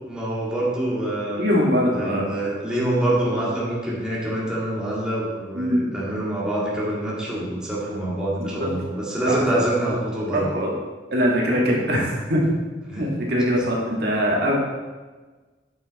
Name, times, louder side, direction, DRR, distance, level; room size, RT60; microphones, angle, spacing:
voice 1, 0.1-1.4 1.9-10.5 12.9-13.1, right 1 dB, 5° right, -7 dB, 2.1 m, -25 dB
voice 2, 1.4-2.3 5.5-5.9 8.4-8.7 9.3-9.4 10.3-10.8 11.1-12.4 13.0-14.6, equal, 60° right, -2 dB, 1.9 m, -22 dB
9.7 x 6.3 x 4.1 m, 1.3 s
head